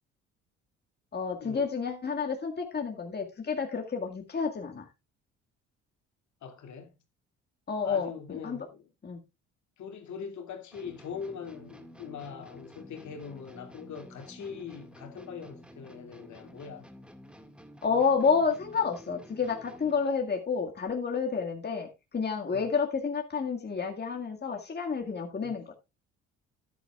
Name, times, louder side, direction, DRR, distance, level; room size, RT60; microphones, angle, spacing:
voice 1, 1.1-4.8 7.7-8.7 9.0-9.2 17.8-25.7, left 5 dB, 30° left, 1.9 m, -30 dB
voice 2, 6.4-6.9 7.8-8.9 9.8-16.9 22.5-22.8 25.4-25.6, left 7 dB, 60° left, 2.6 m, -42 dB
sound 1, 10.7-20.1, equal, 5° right, 1.9 m, -51 dB
13.0 x 10.5 x 2.4 m
hypercardioid pair, 60°, 32 cm